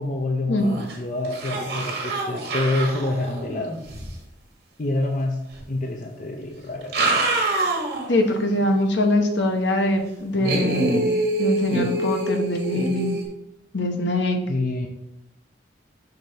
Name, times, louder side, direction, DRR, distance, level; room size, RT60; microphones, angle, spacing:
voice 1, 0.0-3.8 4.8-5.4 5.7-7.1 10.4-10.6 14.5-14.9, left 2 dB, 45° left, 3 dB, 0.5 m, -27 dB
sound 1, 0.6-1.0 1.2-4.1 5.5-5.6 6.7-8.2 8.6-8.7 10.4-13.3, right 2 dB, 55° right, 1.4 m, -25 dB
voice 2, 8.1-13.1 13.7-14.4, left 1 dB, 70° left, 4 dB, 0.9 m, -23 dB
5.9 x 3.3 x 5.1 m, 0.82 s
head